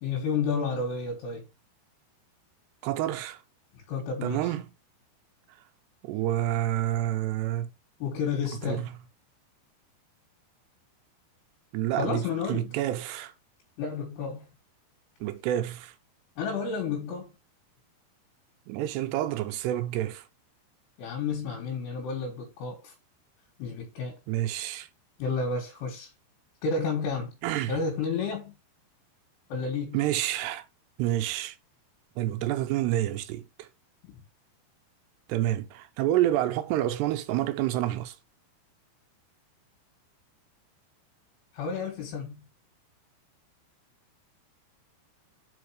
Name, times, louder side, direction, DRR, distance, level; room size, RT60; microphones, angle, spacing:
voice 1, 0.0-1.5 3.9-4.4 8.0-8.9 12.0-12.7 13.8-14.4 16.4-17.3 21.0-22.9 23.6-24.2 25.2-26.1 26.6-27.3 27.7-28.5 29.5-30.0 41.6-42.4, left 5 dB, 75° left, 3.6 m, -31 dB
voice 2, 2.8-3.4 4.2-4.7 6.0-7.7 8.7-8.9 11.7-13.3 15.2-15.9 18.7-20.2 24.3-24.9 27.4-27.8 29.9-30.7 31.0-31.6 32.2-33.7 35.3-38.1, right 13 dB, 80° right, 2.8 m, -28 dB
5.7 x 5.2 x 4.7 m
omnidirectional pair, 4.9 m